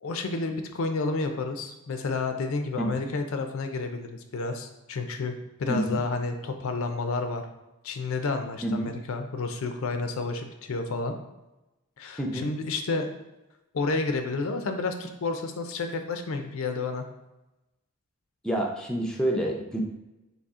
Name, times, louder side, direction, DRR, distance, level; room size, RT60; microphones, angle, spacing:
voice 1, 0.0-7.4 7.8-11.2 12.0-13.1 13.7-17.1, left 3 dB, 70° left, 6 dB, 0.5 m, -30 dB
voice 2, 5.7-6.0 8.6-8.9 12.2-12.5 18.4-19.8, right 1 dB, 5° left, 0 dB, 0.5 m, -28 dB
4.1 x 2.8 x 3.6 m, 0.98 s
head